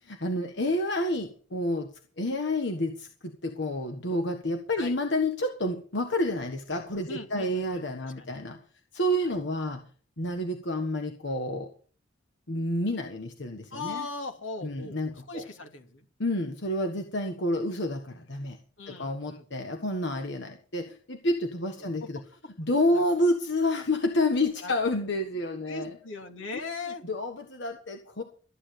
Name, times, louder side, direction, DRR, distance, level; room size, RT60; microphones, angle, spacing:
voice 1, 0.0-1.9 2.2-8.6 8.9-9.8 10.2-11.7 12.5-14.1 14.6-15.4 16.2-18.6 18.9-22.2 22.6-26.0 26.5-26.6 27.0-28.2, left 1 dB, 65° left, 6 dB, 1.4 m, -29 dB
voice 2, 7.1-8.3 13.7-16.0 18.8-19.7 21.8-22.2 24.6-24.7 25.7-27.0, left 3 dB, 85° left, 5 dB, 2.7 m, -39 dB
13.5 x 9.9 x 6.6 m, 0.42 s
head